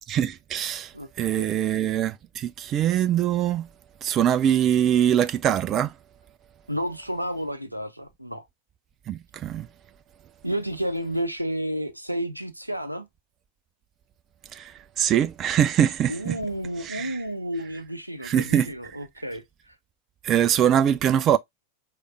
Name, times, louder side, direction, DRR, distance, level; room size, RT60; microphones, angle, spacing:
voice 1, 0.1-0.9 1.2-3.7 4.0-5.9 9.1-9.7 14.5-14.7 15.0-16.4 16.8-17.2 18.2-18.7 20.2-21.4, right 10 dB, 30° right, 0.3 m, -23 dB
voice 2, 1.4-1.7 6.7-8.4 10.4-13.1 16.1-19.4, equal, 90° right, 0.6 m, -31 dB
4.9 x 3.3 x 2.4 m
figure-of-eight pair, 90°, 0 cm